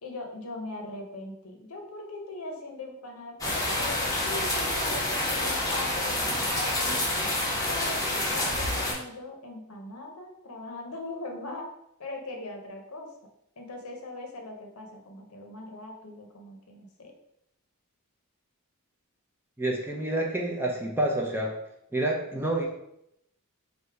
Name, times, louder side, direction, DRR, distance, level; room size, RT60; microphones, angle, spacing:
voice 1, 0.0-7.0 7.6-11.7 12.0-13.1 13.6-17.1, left 2 dB, 70° left, 2 dB, 0.8 m, -40 dB
sound 1, 3.4-8.9, left 1 dB, 15° left, 0.8 m, -28 dB
voice 2, 19.6-21.5 21.9-22.7, right 1 dB, 10° right, -1 dB, 0.6 m, -28 dB
3.3 x 2.7 x 4.5 m, 0.78 s
head